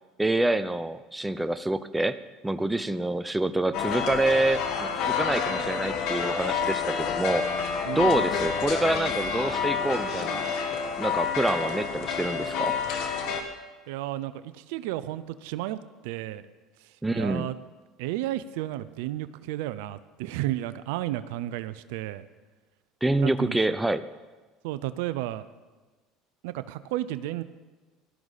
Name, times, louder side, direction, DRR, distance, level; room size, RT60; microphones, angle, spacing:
voice 1, 0.2-2.2 2.4-7.5 8.0-10.5 11.0-12.7 17.0-17.5 23.0-24.0, right 2 dB, 10° right, 12 dB, 0.7 m, -26 dB
sound 1, 3.7-13.4, left 6 dB, 65° left, 1.7 m, -28 dB
voice 2, 7.8-8.2 13.9-16.4 17.1-17.5 18.0-22.2 23.2-23.7 24.6-25.5 26.4-27.4, right 14 dB, 80° right, 14 dB, 0.6 m, -32 dB
18.5 x 13.0 x 4.1 m, 1.3 s
supercardioid pair, 90°, 0 cm